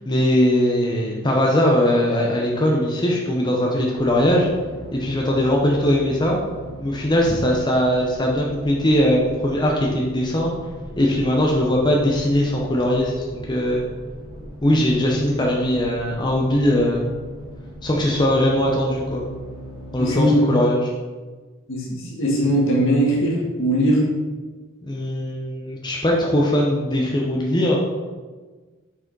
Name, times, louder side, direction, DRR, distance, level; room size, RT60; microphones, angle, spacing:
voice 1, 0.1-4.5 4.9-6.4 6.8-10.5 11.0-13.8 14.6-17.1 17.8-19.2 19.9-20.9 24.8-27.8, left 1 dB, 20° left, -2 dB, 0.8 m, -20 dB
sound 1, 3.9-20.1, equal, 20° right, 1.9 m, -39 dB
voice 2, 20.0-20.4 21.7-24.1, equal, 70° left, -2 dB, 1.8 m, -20 dB
6.3 x 4.9 x 4.6 m, 1.3 s
head